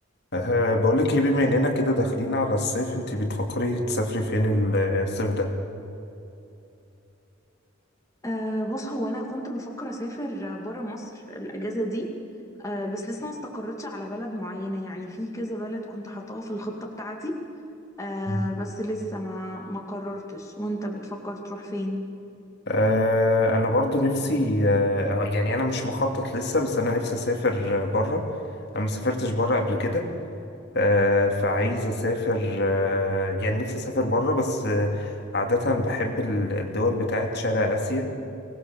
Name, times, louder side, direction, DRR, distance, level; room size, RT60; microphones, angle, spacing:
voice 1, 0.3-5.5 18.3-18.5 22.7-28.3 28.7-30.1 30.7-38.1, left 1 dB, 55° left, 2 dB, 2.6 m, -24 dB
voice 2, 8.2-12.1 12.6-17.4 18.0-22.1, equal, 15° left, 0 dB, 2.1 m, -32 dB
24.5 x 19.0 x 7.1 m, 2.7 s
head